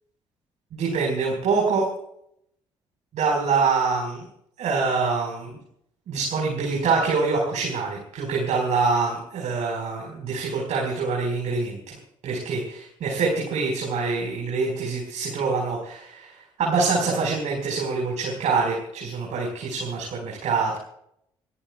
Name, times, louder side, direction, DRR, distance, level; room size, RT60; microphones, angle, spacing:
voice 1, 0.7-1.9 3.1-4.3 4.6-5.6 6.1-11.9 12.2-16.3 16.6-20.8, right 4 dB, 65° right, -2 dB, 4.7 m, -25 dB
29.5 x 14.0 x 2.3 m, 0.72 s
hypercardioid pair, 55°, 13 cm